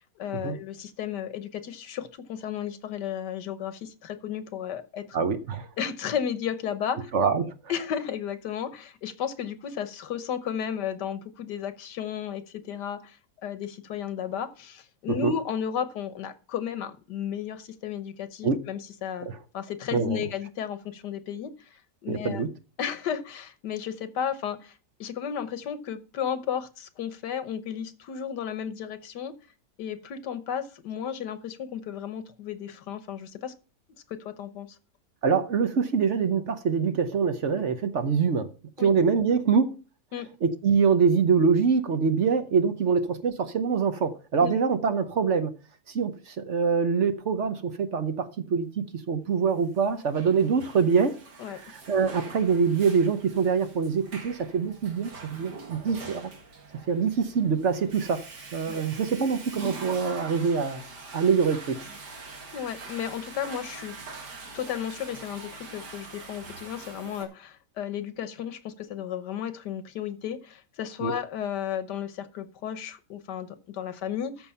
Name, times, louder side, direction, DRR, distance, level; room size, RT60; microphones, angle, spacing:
voice 1, 0.2-5.2 5.8-7.1 7.7-19.3 19.5-22.4 22.8-24.8 25.0-29.3 29.8-33.5 34.1-34.8 38.8-38.9 40.1-40.3 44.4-44.6 51.4-51.6 55.9-56.0 58.7-58.8 62.5-64.3 64.5-74.5, left 8 dB, 85° left, 1.6 m, -33 dB
voice 2, 5.1-5.7 7.1-7.5 15.2-15.3 18.4-18.6 19.9-20.2 22.1-22.5 35.2-38.5 38.8-39.7 40.4-45.5 45.9-51.1 51.5-56.3 56.9-58.2 58.5-60.8 61.1-61.8 71.0-71.1, right 5 dB, 50° right, 1.1 m, -24 dB
Water / Toilet flush, 49.8-67.2, right 3 dB, 85° right, 2.6 m, -44 dB
13.5 x 5.4 x 5.6 m
omnidirectional pair, 1.8 m